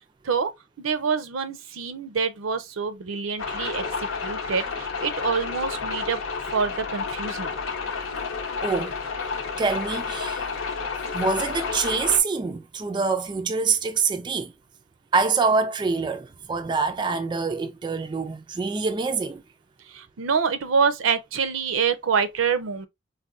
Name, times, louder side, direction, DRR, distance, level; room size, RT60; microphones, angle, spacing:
voice 1, 0.8-6.2 6.5-7.5 19.9-22.9, right 6 dB, 80° right, 0.5 m, -26 dB
sound 1, 3.4-12.2, left 5 dB, 85° left, 0.8 m, -30 dB
voice 2, 8.6-9.0 9.6-10.5 11.1-14.5 15.1-19.4, right 4 dB, 25° right, 0.3 m, -25 dB
4.1 x 2.1 x 2.4 m
head